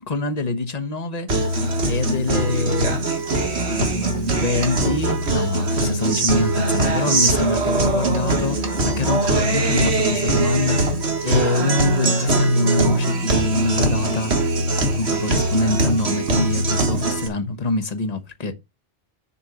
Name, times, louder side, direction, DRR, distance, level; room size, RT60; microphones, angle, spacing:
voice 1, 0.1-1.4 1.9-3.0 3.7-14.4 14.8-18.5, left 3 dB, 35° left, 1.3 m, -25 dB
Guitar, 1.3-17.3, right 2 dB, 70° right, 1.9 m, -21 dB
7.0 x 4.4 x 6.7 m
omnidirectional pair, 1.1 m